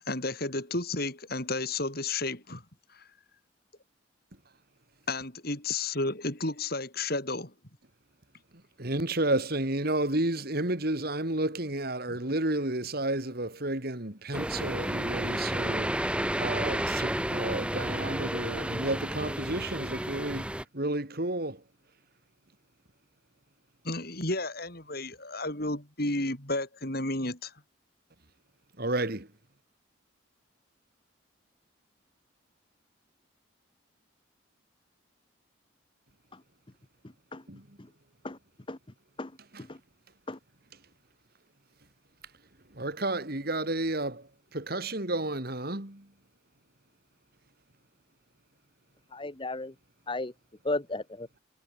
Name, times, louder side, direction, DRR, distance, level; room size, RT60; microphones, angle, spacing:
voice 1, 0.0-2.6 2.9-3.1 5.1-7.5 23.8-27.5, left 2 dB, 50° left, 5.7 m, -32 dB
voice 2, 8.8-21.6 28.8-29.3 37.5-37.6 39.5-39.6 42.7-44.3 44.5-46.1, right 2 dB, 50° right, 2.6 m, -31 dB
sound 1, 14.3-20.6, right 1 dB, 5° right, 1.7 m, -31 dB
voice 3, 49.1-49.7 50.1-50.3 50.6-51.3, left 2 dB, 25° left, 0.9 m, -34 dB
head